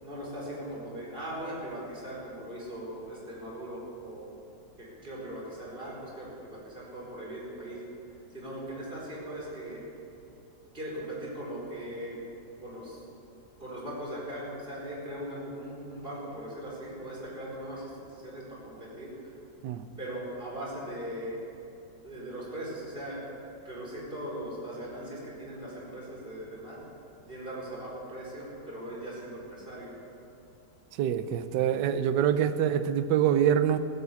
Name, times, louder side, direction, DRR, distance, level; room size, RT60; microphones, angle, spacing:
voice 1, 0.0-4.3 4.8-7.8 8.3-9.8 10.7-12.2 12.6-13.0 13.6-19.3 20.0-21.4 22.0-23.2 23.6-26.8 27.3-29.9, right 1 dB, 30° right, -5 dB, 4.9 m, -39 dB
voice 2, 31.0-33.8, right 9 dB, 75° right, 11 dB, 1.3 m, -25 dB
16.5 x 12.0 x 7.2 m, 2.7 s
omnidirectional pair, 2.0 m